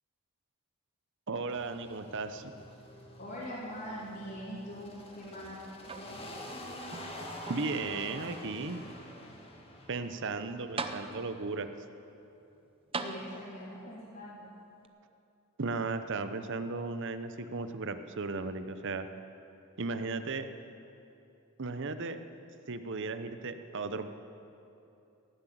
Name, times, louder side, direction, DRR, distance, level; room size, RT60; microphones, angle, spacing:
voice 1, 1.3-2.5 7.5-8.8 9.9-11.7 15.6-19.1 19.8-20.5 21.6-22.2 22.7-24.1, right 3 dB, 55° right, 10 dB, 0.8 m, -35 dB
sound 1, 1.5-11.2, left 1 dB, 25° left, 1.8 m, -47 dB
voice 2, 3.2-6.4 13.0-14.5, equal, 40° left, -9 dB, 2.9 m, -43 dB
sound 2, 5.8-6.5 6.9-7.9 8.6-8.7 10.3-10.4 10.8-11.5 12.9-13.8 14.8-14.9, right 4 dB, 25° right, 0.6 m, -40 dB
17.5 x 7.9 x 9.2 m, 2.8 s
head